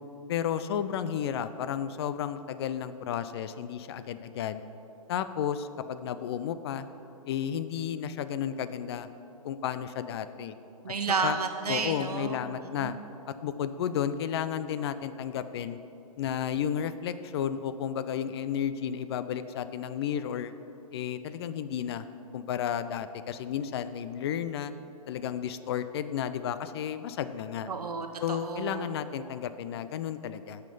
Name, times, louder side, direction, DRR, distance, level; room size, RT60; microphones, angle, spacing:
voice 1, 0.3-4.6 5.1-6.9 7.3-9.1 9.4-10.5 11.2-11.4 11.7-13.0 13.3-15.8 16.2-20.5 20.9-22.1 22.3-24.7 25.1-27.7 28.2-30.6, left 9 dB, 45° left, 12 dB, 0.4 m, -32 dB
voice 2, 10.8-12.4 12.8-13.0 27.7-28.9, right 5 dB, 85° right, 5 dB, 1.0 m, -31 dB
8.9 x 5.7 x 5.4 m, 2.8 s
hypercardioid pair, 135°, 19 cm